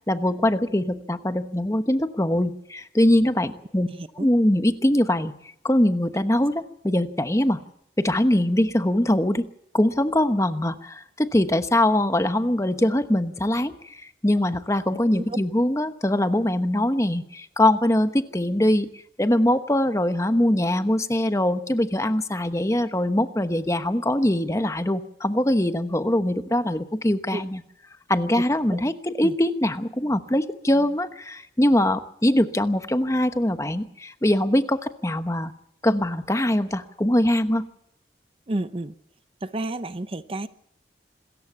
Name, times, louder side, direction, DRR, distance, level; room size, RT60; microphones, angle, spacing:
voice 1, 0.1-3.9 4.2-5.4 5.6-7.6 8.0-9.4 9.7-18.9 19.2-27.6 28.1-35.5 35.8-37.7, left 1 dB, 15° left, 1.0 m, -22 dB
voice 2, 3.9-4.3 15.2-15.4 27.3-27.4 28.7-28.8 29.2-29.3 38.5-38.9 39.4-40.5, right 1 dB, 30° right, 0.7 m, -31 dB
26.5 x 14.5 x 7.1 m
head